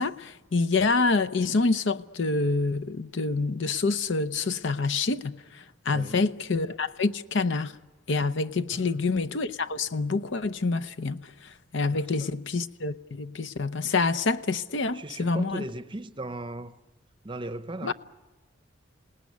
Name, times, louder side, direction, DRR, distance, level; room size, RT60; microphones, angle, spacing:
voice 1, 0.0-7.7 8.1-15.6 17.8-17.9, left 3 dB, 60° left, 0.7 m, -27 dB
voice 2, 5.9-6.2 8.7-9.0 11.9-12.3 14.9-16.8 17.2-17.9, right 2 dB, 25° right, 0.8 m, -38 dB
27.0 x 18.5 x 9.5 m
head